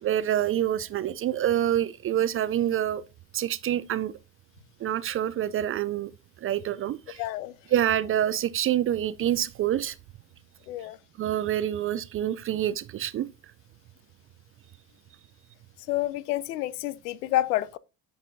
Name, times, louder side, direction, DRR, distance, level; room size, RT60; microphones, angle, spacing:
voice 1, 0.0-3.0 3.3-4.1 4.8-6.1 6.4-7.2 7.7-10.0 11.2-13.3, right 11 dB, 30° right, 0.4 m, -26 dB
voice 2, 7.2-7.6 10.7-11.0 15.8-17.8, left 14 dB, 75° left, 0.6 m, -29 dB
8.4 x 5.9 x 2.7 m
hypercardioid pair, 65°, 47 cm